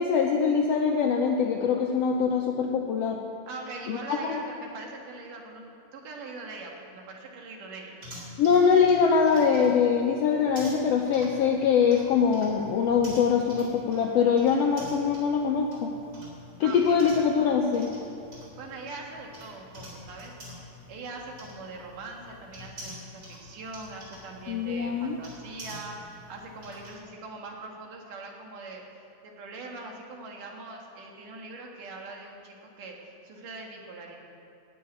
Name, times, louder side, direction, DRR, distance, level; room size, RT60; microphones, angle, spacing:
voice 1, 0.0-3.2 3.9-4.4 8.4-15.9 16.6-17.9 24.5-25.2, left 6 dB, 80° left, 2 dB, 1.4 m, -23 dB
voice 2, 3.5-8.0 16.6-17.2 18.5-28.8 29.2-34.2, right 3 dB, 85° right, 0 dB, 3.2 m, -42 dB
sound 1, 8.0-26.9, left 1 dB, 35° right, 4.5 m, -47 dB
14.5 x 6.4 x 9.5 m, 2.6 s
omnidirectional pair, 3.7 m